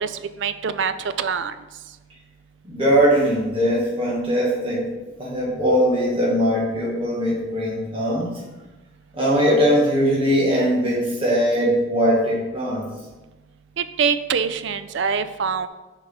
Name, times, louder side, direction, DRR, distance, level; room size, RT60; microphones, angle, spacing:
voice 1, 0.0-1.5 13.8-15.7, right 6 dB, 55° right, 11 dB, 0.4 m, -24 dB
voice 2, 2.6-4.9 5.2-8.4 9.1-12.9, equal, 25° right, -6 dB, 1.3 m, -20 dB
6.7 x 4.6 x 5.3 m, 1.1 s
head